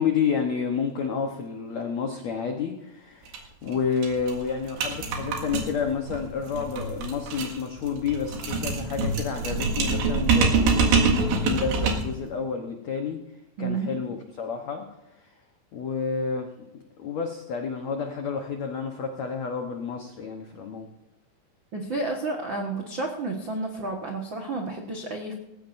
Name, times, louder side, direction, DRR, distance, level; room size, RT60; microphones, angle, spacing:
voice 1, 0.0-13.2 13.6-15.4 15.7-20.9, left 6 dB, 75° left, 3 dB, 1.6 m, -30 dB
sound 1, 3.3-3.4 3.7-3.8 4.0-12.2, right 4 dB, 90° right, 4.0 m, -25 dB
voice 2, 13.6-13.9 21.7-25.3, right 3 dB, 70° right, 1 dB, 1.1 m, -31 dB
19.5 x 16.5 x 2.7 m, 0.92 s
omnidirectional pair, 4.9 m